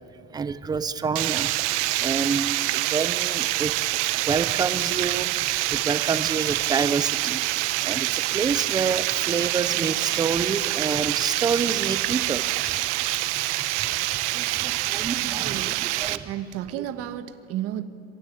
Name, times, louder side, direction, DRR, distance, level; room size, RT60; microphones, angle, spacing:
voice 1, 0.3-1.5 2.0-7.4 7.8-13.0 13.3-13.9 14.3-16.3 16.8-16.9, right 5 dB, 10° right, 0.5 m, -28 dB
Water, 1.2-16.2, right 18 dB, 80° right, 1.1 m, -26 dB
voice 2, 15.4-17.8, right 12 dB, 40° right, 1.4 m, -33 dB
27.0 x 24.5 x 9.0 m
cardioid pair, 165°, 35 cm